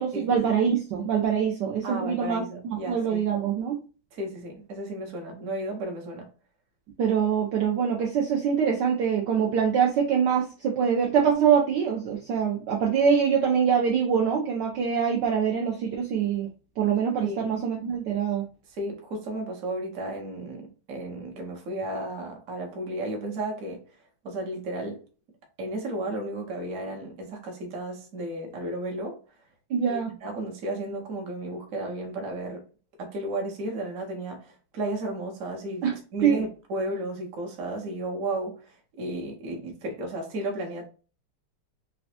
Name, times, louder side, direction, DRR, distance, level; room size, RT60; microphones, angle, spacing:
voice 1, 0.0-3.8 7.0-16.5 16.8-18.4 29.7-30.1 35.8-35.9 36.2-36.4, right 7 dB, 75° right, 1.1 m, -24 dB
voice 2, 1.8-3.2 4.1-6.3 17.2-17.4 18.7-23.8 24.2-25.0 25.6-29.2 29.9-32.7 33.0-40.9, right 1 dB, 55° right, 1.0 m, -33 dB
4.0 x 2.2 x 2.7 m
omnidirectional pair, 2.3 m